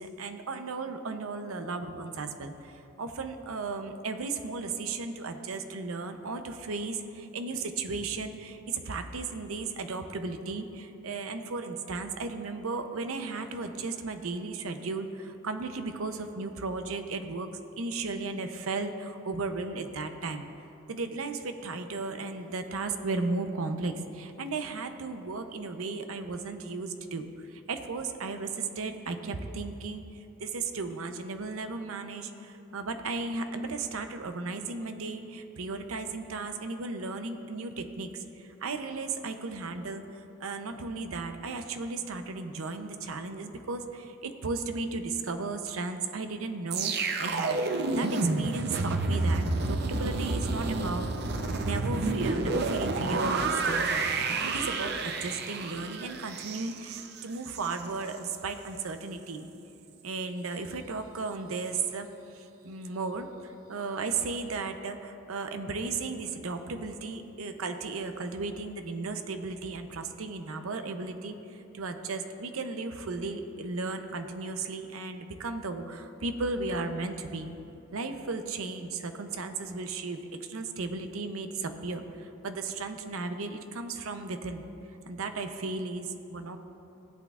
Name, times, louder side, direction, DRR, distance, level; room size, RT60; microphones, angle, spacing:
voice 1, 0.0-17.5 17.8-20.5 20.9-47.6 47.9-54.1 54.5-59.5 60.0-77.5 77.9-84.7 85.1-86.6, right 3 dB, 90° right, 7 dB, 0.6 m, -35 dB
sound 1, 46.7-57.8 58.1-58.4, right 3 dB, 50° right, 0.6 m, -30 dB
16.5 x 8.2 x 2.4 m, 2.8 s
head